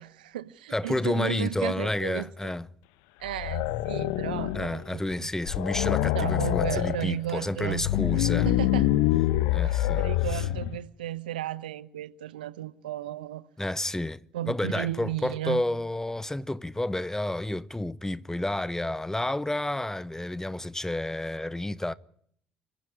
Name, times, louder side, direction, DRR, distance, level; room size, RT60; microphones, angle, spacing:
voice 1, 0.0-2.5 3.2-5.3 6.1-7.8 8.2-8.9 9.6-13.5 14.3-15.6, right 12 dB, 85° right, 0.9 m, -34 dB
voice 2, 0.7-2.7 4.5-8.5 9.5-10.0 10.3-10.4 13.6-21.9, left 1 dB, 10° left, 1.0 m, -30 dB
sound 1, 3.3-4.8 5.1-5.2 5.5-7.0 7.6-10.8, left 15 dB, 75° left, 0.9 m, -26 dB
26.5 x 15.0 x 9.9 m
hypercardioid pair, 50°, 5 cm